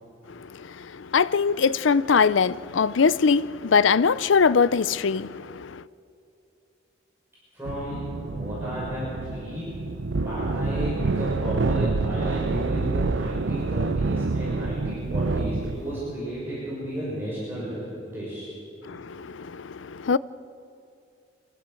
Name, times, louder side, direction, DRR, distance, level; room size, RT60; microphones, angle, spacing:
voice 1, 0.3-5.8 18.9-20.2, left 5 dB, 85° left, 0.6 m, -22 dB
voice 2, 7.5-8.1 8.3-9.7 10.2-18.5 18.9-19.0, equal, 10° right, 6.4 m, -33 dB
sound 1, 7.6-16.0, right 3 dB, 80° right, 0.7 m, -27 dB
24.5 x 15.5 x 7.7 m
head